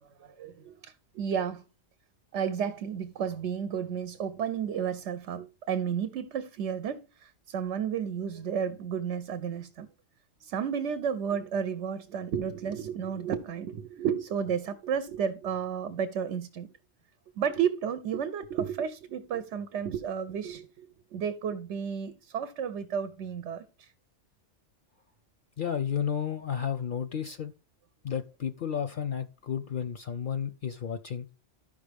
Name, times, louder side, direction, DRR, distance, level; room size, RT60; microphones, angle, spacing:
voice 1, 0.0-1.6 2.3-9.9 10.4-16.7 17.4-23.9, right 7 dB, 90° right, 1.0 m, -32 dB
voice 2, 25.6-27.5 28.0-31.3, left 8 dB, 60° left, 0.6 m, -32 dB
13.0 x 5.3 x 3.3 m
omnidirectional pair, 1.2 m